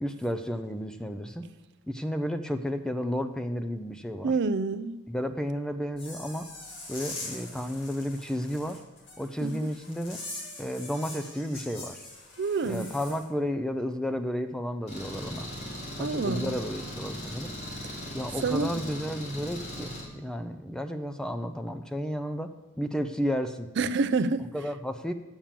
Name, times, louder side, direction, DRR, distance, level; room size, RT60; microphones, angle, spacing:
voice 1, 0.0-1.5 1.9-4.3 5.1-6.5 6.9-8.8 9.2-10.2 10.6-12.0 12.6-15.5 16.0-17.5 18.1-22.5 22.8-23.7 24.5-25.1, equal, 5° left, 7 dB, 0.5 m, -32 dB
voice 2, 4.2-5.0 9.4-9.5 12.4-12.9 16.0-16.6 17.8-17.9 18.4-18.8 23.8-24.5, right 4 dB, 55° right, 12 dB, 0.4 m, -28 dB
sound 1, 6.0-13.2, left 2 dB, 60° left, 2.4 m, -43 dB
Engine, 14.9-20.0, equal, 35° left, 3.0 m, -38 dB
8.6 x 7.2 x 7.4 m, 1.1 s
head